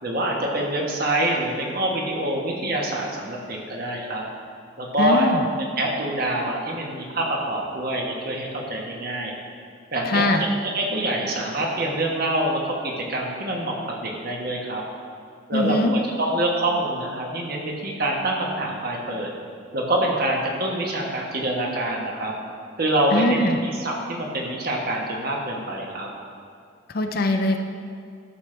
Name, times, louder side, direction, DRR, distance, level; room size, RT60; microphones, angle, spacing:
voice 1, 0.0-4.2 4.8-5.3 5.8-9.3 9.9-14.8 15.5-19.3 19.7-22.3 22.8-26.1, right 1 dB, 45° right, -1 dB, 1.2 m, -26 dB
voice 2, 5.0-5.4 10.1-10.5 15.5-15.9 23.1-23.6 26.9-27.6, left 2 dB, 45° left, 5 dB, 0.5 m, -22 dB
12.5 x 6.5 x 3.3 m, 2.3 s
head